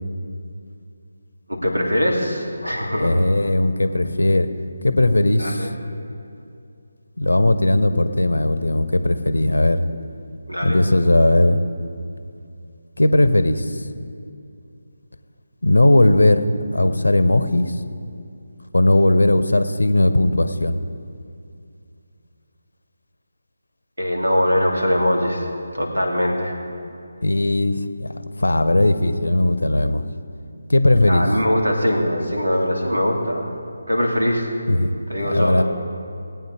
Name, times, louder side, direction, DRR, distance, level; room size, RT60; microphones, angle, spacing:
voice 1, 1.5-3.1 5.4-5.7 10.5-10.8 24.0-25.5 25.7-26.5 31.1-33.5 33.9-34.5 35.1-35.6, equal, 75° right, 0 dB, 2.7 m, -21 dB
voice 2, 3.0-4.5 4.8-5.7 7.2-9.8 10.6-11.6 13.0-13.9 15.6-16.5 16.7-17.8 18.7-20.8 27.2-30.0 30.7-31.2 34.7-34.9 35.3-35.6, left 1 dB, 70° left, 11 dB, 0.9 m, -18 dB
19.5 x 8.9 x 4.7 m, 2.5 s
figure-of-eight pair, 155°, 0 cm